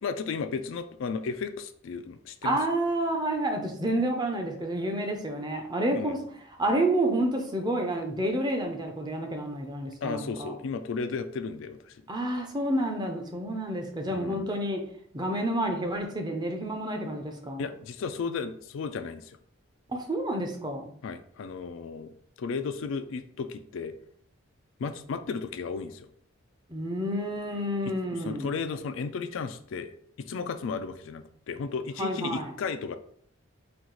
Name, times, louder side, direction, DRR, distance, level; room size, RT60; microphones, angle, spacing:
voice 1, 0.0-2.6 5.9-6.2 10.0-12.0 14.1-14.5 17.6-19.4 21.0-24.0 24.8-26.1 27.8-29.9 30.2-33.0, left 5 dB, 70° left, 9 dB, 0.3 m, -34 dB
voice 2, 2.4-6.2 6.6-10.5 12.1-14.8 15.1-17.7 19.9-21.0 26.7-28.5 32.0-32.5, right 1 dB, 20° right, 3 dB, 0.5 m, -29 dB
4.5 x 2.4 x 3.8 m, 0.63 s
head